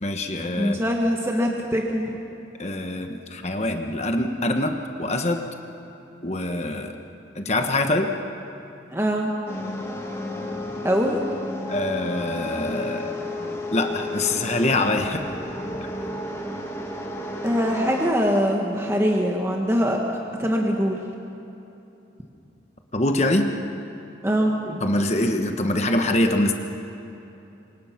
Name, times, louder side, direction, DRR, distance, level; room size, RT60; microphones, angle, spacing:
voice 1, 0.0-0.8 2.6-5.4 6.2-7.0 7.3-8.1 11.7-13.2 13.4-15.3 22.9-23.5 24.8-26.5, left 1 dB, 35° left, 5 dB, 1.2 m, -24 dB
voice 2, 0.6-2.2 8.9-9.3 10.8-11.2 17.4-20.0 20.4-21.0 24.2-24.8, equal, 15° right, 0 dB, 1.4 m, -23 dB
sound 1, 9.5-18.1, left 1 dB, 15° left, 2.0 m, -32 dB
28.5 x 24.0 x 5.9 m, 2.9 s
head